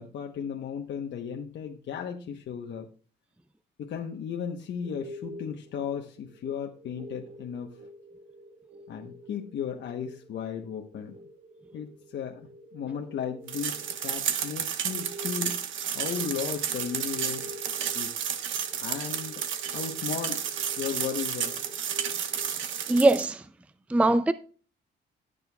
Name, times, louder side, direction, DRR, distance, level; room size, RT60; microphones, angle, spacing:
voice 1, 0.0-2.9 3.8-7.8 8.9-11.2 11.7-15.6 15.9-17.5 17.9-18.3 18.8-19.4 19.7-20.5 20.8-21.6, left 7 dB, 65° left, 1.0 m, -35 dB
sound 1, 4.6-23.0, equal, 35° right, 1.3 m, -48 dB
sound 2, 13.5-23.3, right 8 dB, 75° right, 1.2 m, -32 dB
voice 2, 22.9-23.4 23.9-24.3, right 2 dB, 5° right, 0.4 m, -21 dB
19.5 x 6.7 x 2.3 m
cardioid pair, 90°, 20 cm